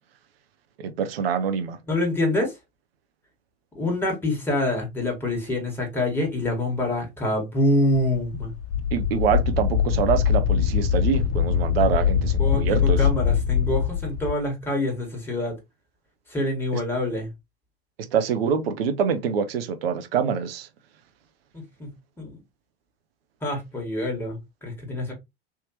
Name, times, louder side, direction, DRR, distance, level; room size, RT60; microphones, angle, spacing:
voice 1, 0.8-1.8 8.9-13.1 16.7-16.8 18.1-20.7, right 7 dB, 65° right, 0.7 m, -25 dB
voice 2, 1.9-2.5 3.7-8.5 12.4-15.6 16.3-17.3 21.5-21.9 22.2-22.3 23.4-25.1, left 1 dB, 5° left, 1.7 m, -26 dB
Wind, 7.9-14.3, left 8 dB, 55° left, 1.1 m, -23 dB
3.5 x 2.8 x 2.9 m
figure-of-eight pair, 80°, 33 cm